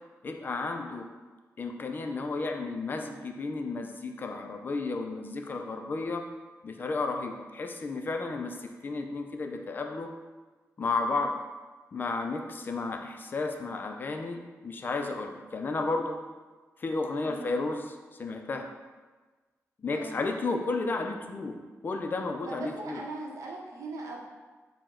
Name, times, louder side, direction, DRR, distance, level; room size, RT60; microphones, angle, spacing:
voice 1, 0.2-1.1 1.6-6.2 6.6-10.1 10.8-11.3 11.9-16.2 16.8-18.7 19.8-23.0, left 3 dB, 35° left, 4 dB, 0.3 m, -33 dB
voice 2, 22.4-24.2, right 2 dB, 90° right, -1 dB, 0.7 m, -39 dB
4.7 x 2.1 x 3.6 m, 1.3 s
wide cardioid pair, 145°, 5 cm